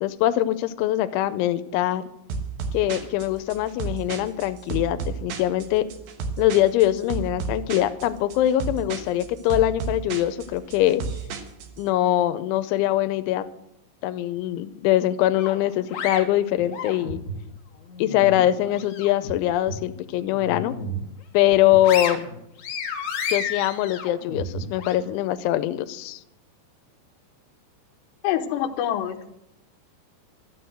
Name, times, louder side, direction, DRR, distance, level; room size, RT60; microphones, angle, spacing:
voice 1, 0.0-2.0 2.7-5.9 6.4-11.0 11.8-13.4 14.0-17.2 18.0-20.7 21.3-22.3 23.3-26.2, left 13 dB, 90° left, 12 dB, 3.0 m, -23 dB
sound 1, 2.3-11.8, right 4 dB, 65° right, 2.7 m, -32 dB
sound 2, 15.4-17.4 17.8-19.3 19.7-19.8 20.3-21.1 21.5-24.9, left 4 dB, 60° left, 2.2 m, -32 dB
voice 2, 28.2-29.3, left 11 dB, 75° left, 6 dB, 2.9 m, -26 dB
12.5 x 9.7 x 7.8 m, 0.82 s
omnidirectional pair, 5.3 m